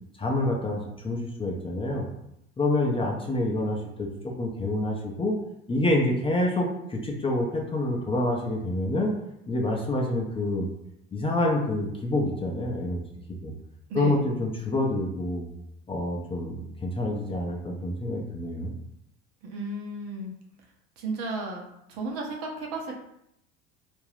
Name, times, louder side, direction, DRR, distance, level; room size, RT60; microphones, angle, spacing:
voice 1, 0.2-2.1 2.6-5.3 5.7-9.1 9.5-10.7 11.1-13.0 13.4-13.5 13.9-15.5 15.9-18.7, left 1 dB, 15° left, -1 dB, 0.6 m, -27 dB
voice 2, 13.9-14.3 19.4-20.3 21.0-21.6 21.9-22.9, right 2 dB, 55° right, 0 dB, 0.8 m, -34 dB
2.5 x 2.2 x 3.3 m, 0.79 s
hypercardioid pair, 70°, 32 cm